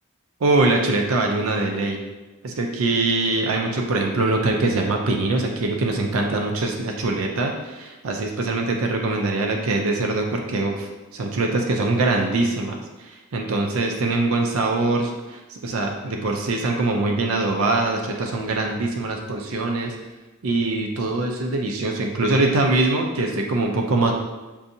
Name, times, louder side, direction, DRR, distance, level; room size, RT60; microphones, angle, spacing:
voice 1, 0.4-2.0 2.4-19.9 20.4-24.1, right 2 dB, 65° right, 1 dB, 0.5 m, -23 dB
6.9 x 2.6 x 2.7 m, 1.2 s
head